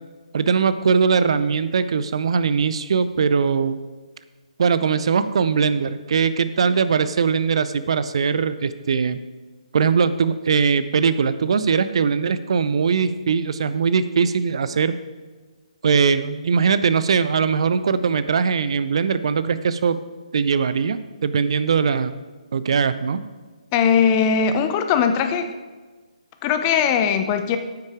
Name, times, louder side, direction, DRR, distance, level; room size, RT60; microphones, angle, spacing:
voice 1, 0.3-3.8 4.6-9.2 9.7-15.0 15.8-20.0 20.3-22.2 22.5-23.2, right 6 dB, 50° right, 13 dB, 0.6 m, -20 dB
voice 2, 23.7-25.5 26.4-27.6, left 7 dB, 25° left, 8 dB, 0.7 m, -19 dB
9.6 x 8.4 x 4.8 m, 1.3 s
figure-of-eight pair, 140°, 4 cm